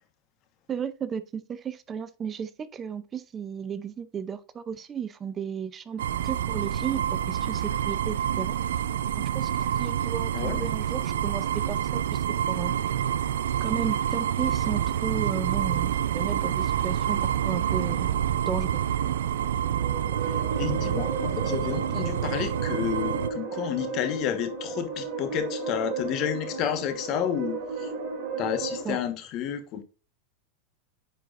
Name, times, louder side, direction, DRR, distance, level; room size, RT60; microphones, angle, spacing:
voice 1, 0.7-8.6 9.3-9.5 9.8-12.7 13.6-18.1 18.5-19.1 28.8-29.0, right 7 dB, 25° right, 0.5 m, -34 dB
sound 1, 6.0-23.3, right 10 dB, 85° right, 0.3 m, -27 dB
voice 2, 10.3-10.7 20.6-27.9 28.4-29.8, left 9 dB, 45° left, 1.2 m, -31 dB
sound 2, 19.6-28.8, right 4 dB, 55° right, 2.3 m, -34 dB
9.1 x 4.6 x 2.5 m
hypercardioid pair, 120°, 0 cm